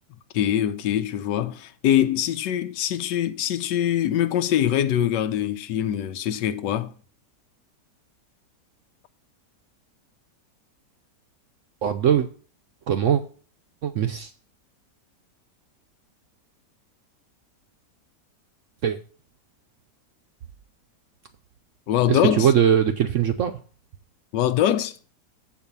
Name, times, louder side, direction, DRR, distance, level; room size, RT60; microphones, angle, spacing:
voice 1, 0.3-6.9 21.9-22.5 24.3-25.0, left 10 dB, 90° left, 1.3 m, -23 dB
voice 2, 11.8-12.3 12.9-13.2 13.8-14.3 18.8-19.0 22.1-23.6, right 9 dB, 70° right, 0.7 m, -21 dB
7.8 x 4.8 x 6.8 m
omnidirectional pair, 1.9 m